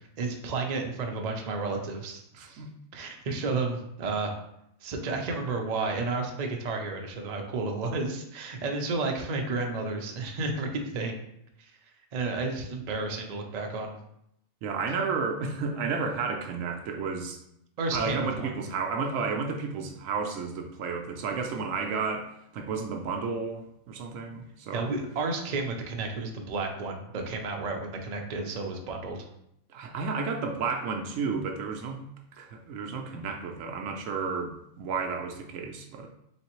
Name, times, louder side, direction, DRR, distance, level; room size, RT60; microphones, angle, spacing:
voice 1, 0.2-2.6 2.9-4.3 4.8-11.2 12.1-14.0 17.8-18.6 24.7-29.2, right 3 dB, 55° right, 2 dB, 0.4 m, -32 dB
voice 2, 2.4-2.7 14.6-17.4 17.9-22.3 22.5-24.9 29.7-32.0 32.3-36.1, right 5 dB, 70° right, 4 dB, 0.9 m, -32 dB
4.0 x 3.5 x 3.0 m, 0.76 s
omnidirectional pair, 1.5 m